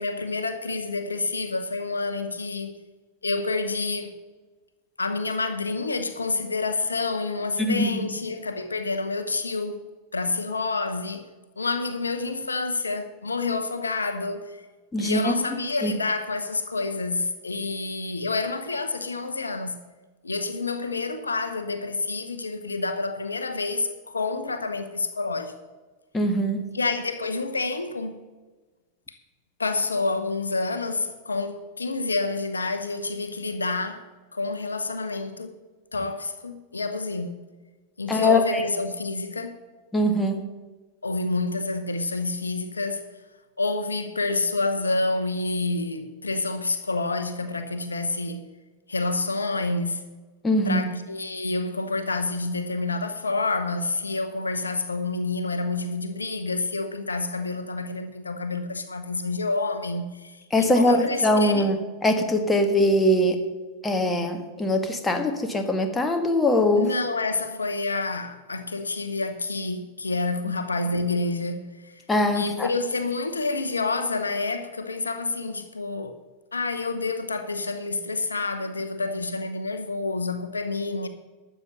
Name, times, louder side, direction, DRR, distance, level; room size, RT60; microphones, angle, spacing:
voice 1, 0.0-2.8 3.2-4.2 5.0-9.8 10.1-11.2 11.6-14.6 15.0-19.8 20.2-25.5 26.7-28.2 29.6-34.0 34.3-35.6 35.9-37.4 38.0-39.5 41.0-43.0 43.6-48.5 48.9-50.1 50.6-61.7 66.8-72.0 72.3-76.1 76.5-81.1, left 3 dB, 75° left, 0.9 m, -28 dB
voice 2, 7.6-8.0 14.9-15.3 15.8-15.9 26.1-26.7 38.1-38.6 39.9-40.5 50.4-50.9 60.5-63.4 63.8-66.9 72.1-72.7, left 1 dB, 10° left, 1.5 m, -22 dB
12.5 x 7.5 x 6.7 m
figure-of-eight pair, 90°, 0 cm